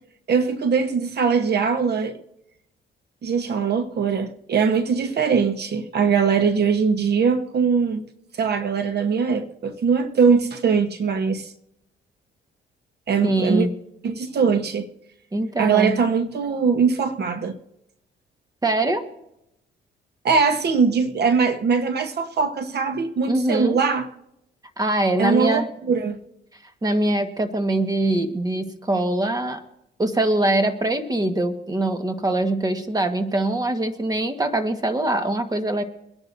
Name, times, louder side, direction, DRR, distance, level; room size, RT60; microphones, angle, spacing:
voice 1, 0.3-2.2 3.2-8.0 8.3-11.5 13.1-13.7 14.0-14.9 15.6-17.6 20.2-24.1 25.2-26.2, right 5 dB, 55° right, 1.1 m, -21 dB
voice 2, 13.2-13.7 15.3-16.0 18.6-19.0 23.3-23.8 24.8-25.7 26.8-29.6 30.0-35.8, right 1 dB, 20° right, 1.4 m, -23 dB
24.0 x 10.5 x 2.7 m
cardioid pair, 90°, 20 cm